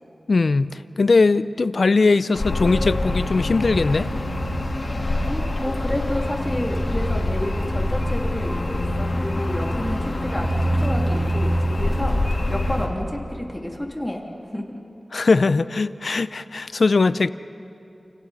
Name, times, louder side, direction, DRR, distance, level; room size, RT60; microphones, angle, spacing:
voice 1, 0.3-4.1 15.1-17.3, left 3 dB, 70° left, 14 dB, 0.5 m, -20 dB
sound 1, 2.3-12.9, left 1 dB, 50° left, 3.5 m, -24 dB
voice 2, 5.2-14.3 14.5-14.7, left 1 dB, 10° left, 0 dB, 2.6 m, -30 dB
29.5 x 29.5 x 4.1 m, 2.8 s
wide cardioid pair, 90°, 0 cm